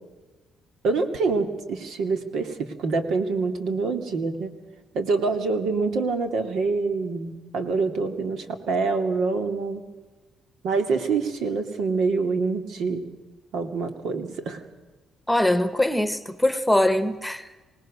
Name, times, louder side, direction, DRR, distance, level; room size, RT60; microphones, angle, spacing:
voice 1, 0.8-4.5 4.9-9.8 10.6-13.0 13.5-14.6, right 4 dB, 75° right, 2.5 m, -26 dB
voice 2, 15.3-17.5, left 1 dB, 5° left, 1.4 m, -22 dB
25.0 x 19.0 x 6.6 m
cardioid pair, 90°, 0 cm